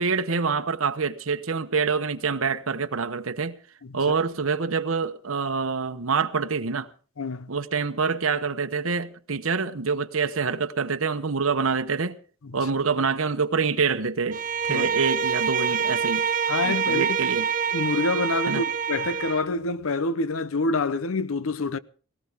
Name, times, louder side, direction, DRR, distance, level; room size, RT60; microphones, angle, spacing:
voice 1, 0.0-3.5 3.9-6.9 7.5-12.2 12.5-14.4 14.7-16.2 16.6-17.4 18.5-18.6, right 5 dB, 85° right, 1.0 m, -26 dB
voice 2, 7.2-7.5 12.4-12.7 14.7-14.9 16.5-17.2 17.7-21.8, left 3 dB, 85° left, 0.8 m, -27 dB
Bowed string instrument, 14.3-19.5, right 7 dB, 40° right, 0.6 m, -26 dB
18.5 x 17.5 x 3.6 m
head